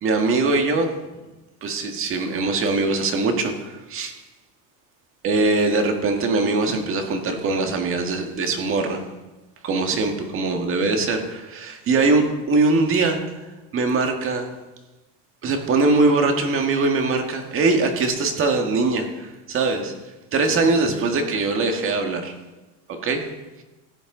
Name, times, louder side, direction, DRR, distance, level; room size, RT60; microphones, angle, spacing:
voice 1, 0.0-0.9 1.6-4.1 5.2-9.0 9.6-13.2 13.7-14.5 15.4-19.9 20.3-22.3 23.0-23.2, right 3 dB, 35° right, 4 dB, 1.7 m, -22 dB
16.0 x 8.6 x 3.9 m, 1.1 s
cardioid pair, 145°, 38 cm